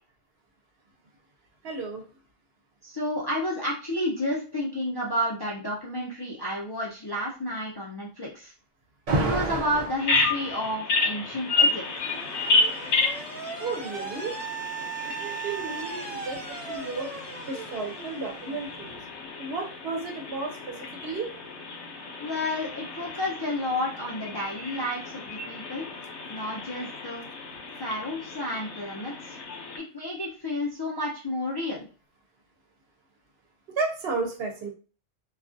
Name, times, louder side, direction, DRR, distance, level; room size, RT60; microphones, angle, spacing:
voice 1, 1.6-2.0 13.6-14.3 15.0-17.1 17.5-19.0 19.4-20.7 21.0-21.3 33.8-34.7, right 3 dB, 65° right, 2 dB, 0.8 m, -33 dB
voice 2, 2.8-8.5 9.1-12.1 22.2-25.9 26.3-27.2 27.8-29.4 29.8-31.9, left 1 dB, 30° left, -5 dB, 0.4 m, -31 dB
Alarm, 9.1-10.0 11.3-19.0, right 3 dB, 50° right, 0.4 m, -34 dB
Bird vocalization bird call bird song, 10.0-29.8, left 3 dB, 80° left, 0.9 m, -31 dB
2.3 x 2.2 x 2.5 m, 0.36 s
omnidirectional pair, 1.1 m